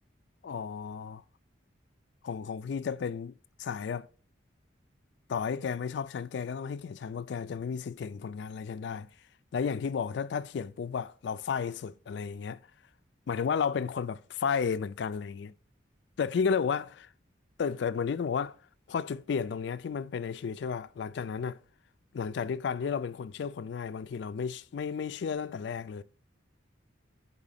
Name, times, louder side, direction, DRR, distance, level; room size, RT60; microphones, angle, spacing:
voice 1, 0.4-1.2 2.2-3.3 3.6-4.1 5.3-9.1 9.5-12.6 13.3-15.5 16.2-17.1 17.6-18.6 18.9-21.6 22.1-26.0, left 6 dB, 65° left, 0.3 m, -33 dB
4.9 x 4.2 x 5.6 m
head